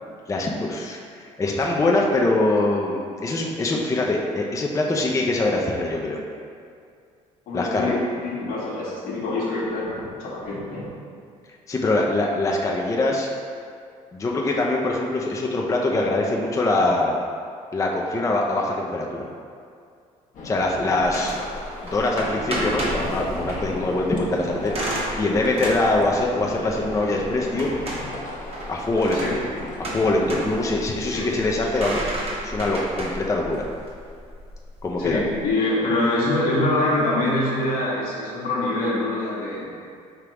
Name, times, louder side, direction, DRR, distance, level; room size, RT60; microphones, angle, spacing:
voice 1, 0.3-6.2 7.5-7.9 11.7-13.3 14.1-17.1 17.7-19.3 20.4-21.4 21.8-24.8 25.2-28.0 28.7-29.2 29.8-32.0 32.4-33.7 34.8-35.2, left 2 dB, 20° left, -1 dB, 0.4 m, -23 dB
voice 2, 7.5-10.9 29.1-29.3 31.0-31.4 35.0-39.7, left 2 dB, 75° left, -5 dB, 1.2 m, -25 dB
sound 1, 20.3-30.4, left 2 dB, 55° left, 0.8 m, -37 dB
sound 2, 21.0-35.5, right 1 dB, 40° right, 1.2 m, -32 dB
3.4 x 2.8 x 4.7 m, 2.3 s
supercardioid pair, 80°, 15 cm